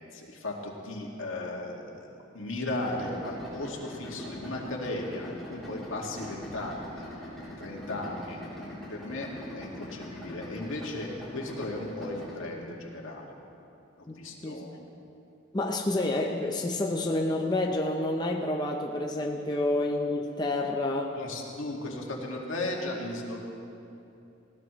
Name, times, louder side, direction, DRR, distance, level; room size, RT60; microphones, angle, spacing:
voice 1, 0.0-2.1 2.3-7.3 7.6-9.3 9.5-13.3 14.2-14.8 21.2-23.4, left 2 dB, 75° left, -1 dB, 2.1 m, -36 dB
Idling, 2.8-12.4, left 1 dB, ahead, 3.4 m, -43 dB
voice 2, 14.1-14.6 15.5-21.2, left 2 dB, 20° left, 2 dB, 0.6 m, -29 dB
19.5 x 16.0 x 3.1 m, 2.8 s
head